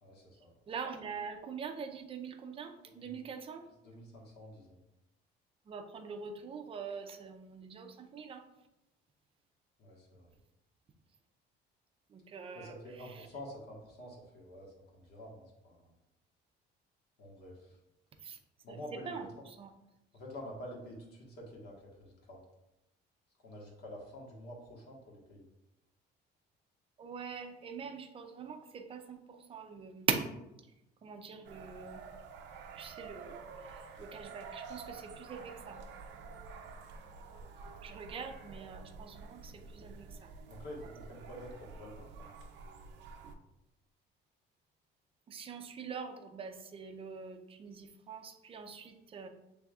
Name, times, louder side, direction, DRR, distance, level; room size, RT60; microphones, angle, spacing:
voice 1, 0.0-0.5 2.8-3.1 3.6-4.8 9.8-10.4 12.5-15.9 17.2-17.8 18.6-19.4 20.1-22.4 23.4-25.5 40.5-42.3, equal, 60° left, -1 dB, 1.4 m, -48 dB
voice 2, 0.7-3.7 5.7-8.5 12.1-13.3 18.2-18.4 18.7-19.7 27.0-30.3 31.0-32.0 32.7-35.8 37.8-40.3 43.2-43.3 45.3-49.3, right 6 dB, 30° right, 5 dB, 0.5 m, -43 dB
sound 1, 31.4-43.3, right 4 dB, 70° right, 0.6 m, -49 dB
6.7 x 3.4 x 2.4 m, 0.90 s
cardioid pair, 150°, 19 cm